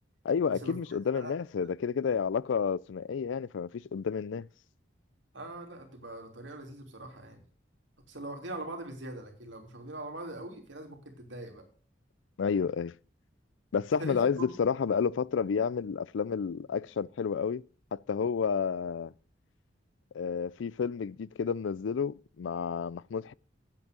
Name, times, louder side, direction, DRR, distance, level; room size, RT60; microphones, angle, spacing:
voice 1, 0.2-4.5 12.4-12.9 13.7-17.6 17.9-19.1 20.1-23.3, left 6 dB, 85° left, 0.4 m, -30 dB
voice 2, 5.3-7.4 8.1-11.6 14.0-14.6, right 1 dB, 80° right, 3.2 m, -42 dB
8.8 x 8.5 x 6.8 m
head